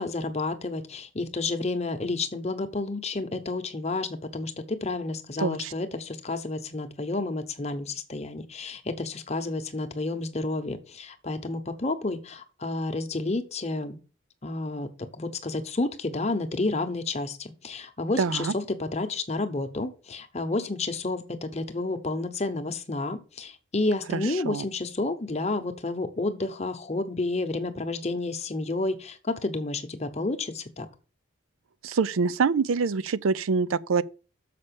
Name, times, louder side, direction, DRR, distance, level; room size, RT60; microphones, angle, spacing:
voice 1, 0.0-14.0 14.4-14.9 15.1-30.9, left 2 dB, 30° left, 0.9 m, -30 dB
voice 2, 5.4-5.7 18.2-18.5 24.1-24.2 24.5-24.6 31.8-34.0, right 5 dB, 85° right, 0.5 m, -25 dB
6.8 x 5.4 x 6.8 m
head